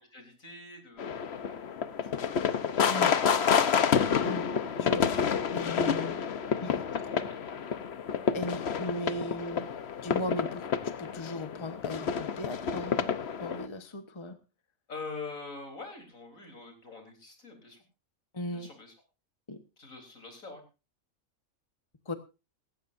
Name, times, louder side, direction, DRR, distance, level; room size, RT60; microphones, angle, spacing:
voice 1, 0.1-2.4 4.5-4.6 7.0-7.6 14.9-17.8 18.5-18.9 19.8-20.6, left 3 dB, 75° left, 4 dB, 4.3 m, -45 dB
sound 1, 1.0-13.7, left 7 dB, 55° left, 1.1 m, -29 dB
voice 2, 2.9-3.6 4.2-4.5 4.8-5.1 5.5-6.3 6.6-6.8 8.3-9.7 10.0-13.1 13.4-14.4 18.3-18.7 19.5-19.6 22.1-22.2, left 1 dB, 20° left, 9 dB, 1.2 m, -37 dB
17.5 x 16.0 x 2.6 m, 0.29 s
omnidirectional pair, 1.4 m